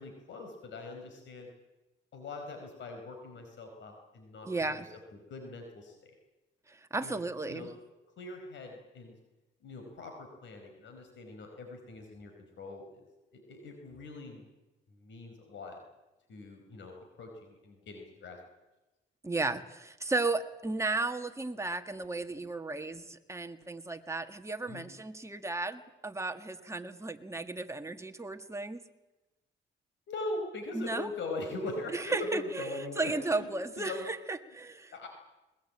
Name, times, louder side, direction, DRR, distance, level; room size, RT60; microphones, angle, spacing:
voice 1, 0.0-1.5 2.1-4.8 5.3-6.1 7.0-7.2 7.5-7.7 8.2-9.2 9.6-13.0 13.3-14.4 14.9-15.8 16.3-18.4 24.7-24.9 30.1-34.1 34.9-35.1, left 2 dB, 70° left, 4 dB, 4.7 m, -41 dB
voice 2, 4.5-4.9 6.7-7.7 19.2-28.8 30.7-31.1 31.9-34.9, right 3 dB, 15° right, 6 dB, 1.8 m, -34 dB
21.5 x 21.0 x 8.7 m, 1.1 s
cardioid pair, 90°, 20 cm